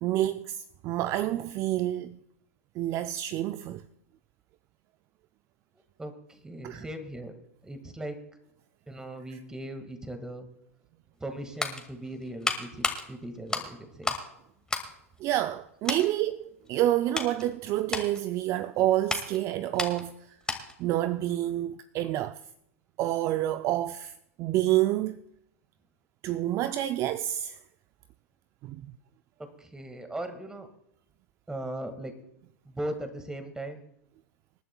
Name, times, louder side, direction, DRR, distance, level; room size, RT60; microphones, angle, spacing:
voice 1, 0.0-2.2 2.8-3.8 6.6-6.8 15.2-20.1 20.8-22.4 23.0-24.1 24.4-25.2 26.2-27.6 28.6-28.8, right 13 dB, 40° right, 0.4 m, -28 dB
voice 2, 6.0-7.4 7.6-8.2 8.9-10.5 11.2-14.2 29.4-30.7 31.5-32.1 32.7-33.9, right 1 dB, 10° right, 1.8 m, -38 dB
sound 1, 11.2-14.3 14.6-15.6 15.8-16.1 16.6-20.9 21.2-21.3, left 3 dB, 10° left, 2.0 m, -34 dB
26.5 x 11.0 x 2.3 m
hypercardioid pair, 100°, 8 cm